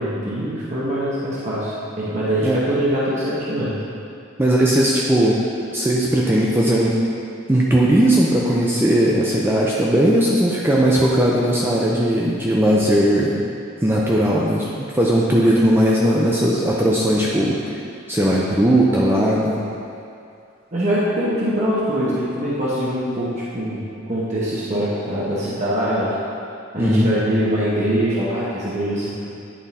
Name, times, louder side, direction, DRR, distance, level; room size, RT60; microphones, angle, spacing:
voice 1, 0.0-3.8 20.7-26.1 26.7-29.2, equal, 35° right, -9 dB, 1.1 m, -23 dB
voice 2, 4.4-7.1 7.5-13.4 13.8-14.7 14.9-17.7 18.1-19.6 26.8-27.1, right 1 dB, 10° right, -4 dB, 0.5 m, -18 dB
10.0 x 3.8 x 4.1 m, 2.5 s
head